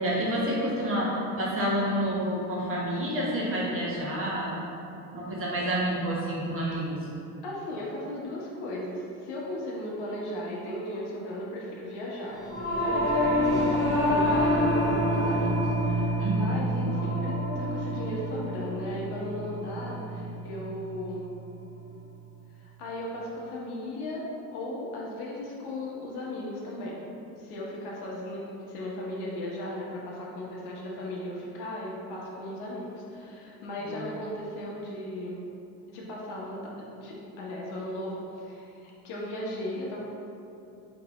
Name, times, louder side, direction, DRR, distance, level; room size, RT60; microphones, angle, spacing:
voice 1, 0.0-4.6 5.1-7.0 16.2-16.6 33.8-34.0, equal, 30° right, -5 dB, 1.0 m, -29 dB
voice 2, 7.4-21.3 22.6-24.2 24.5-27.0 27.4-35.4 35.9-40.0, left 1 dB, 60° left, -4 dB, 1.1 m, -36 dB
Singing / Musical instrument, 12.4-22.0, equal, 5° left, 1.0 m, -27 dB
4.4 x 3.2 x 3.0 m, 2.7 s
supercardioid pair, 110°, 44 cm